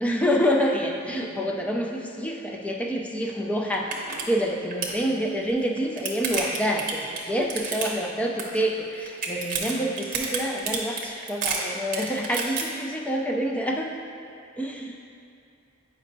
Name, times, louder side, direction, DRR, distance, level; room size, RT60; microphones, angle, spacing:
voice 1, 0.0-13.9 14.6-15.0, equal, 5° left, 0 dB, 0.3 m, -27 dB
sound 1, 3.3-3.4 3.7-4.2 4.5-5.0 5.6-8.1 8.4-8.8 9.1-12.6, right 5 dB, 40° right, 0.7 m, -29 dB
8.4 x 5.4 x 2.6 m, 2.5 s
head